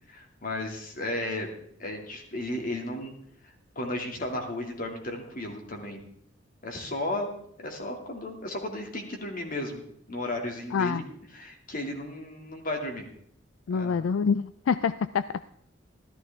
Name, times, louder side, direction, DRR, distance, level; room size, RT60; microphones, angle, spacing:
voice 1, 0.1-1.5 1.8-3.1 3.4-6.0 6.6-7.3 7.6-11.0 11.3-13.1 13.7-14.0, left 1 dB, 45° left, 2 dB, 2.4 m, -34 dB
voice 2, 10.7-11.0 13.7-15.5, left 6 dB, 80° left, 14 dB, 0.4 m, -26 dB
14.0 x 13.5 x 3.5 m, 0.68 s
head